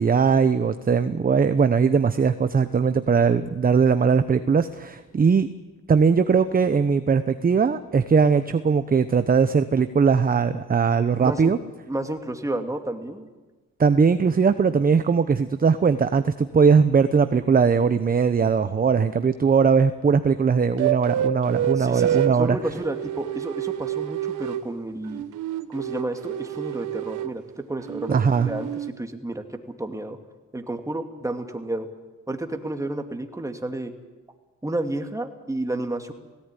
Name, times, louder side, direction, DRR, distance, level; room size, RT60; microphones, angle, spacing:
voice 1, 0.0-5.5 5.9-11.6 13.8-22.6 28.1-28.5, right 5 dB, 30° right, 11 dB, 0.9 m, -20 dB
voice 2, 11.2-11.6 11.8-13.3 21.8-25.2 25.7-30.2 30.5-31.9 32.3-33.9 34.6-36.1, right 1 dB, 10° right, 5 dB, 2.5 m, -31 dB
sound 1, 20.8-22.4 22.8-24.7 25.1-27.4 27.8-28.9, right 11 dB, 85° right, 1.2 m, -28 dB
17.5 x 17.5 x 10.0 m, 1.2 s
cardioid pair, 90°, 30 cm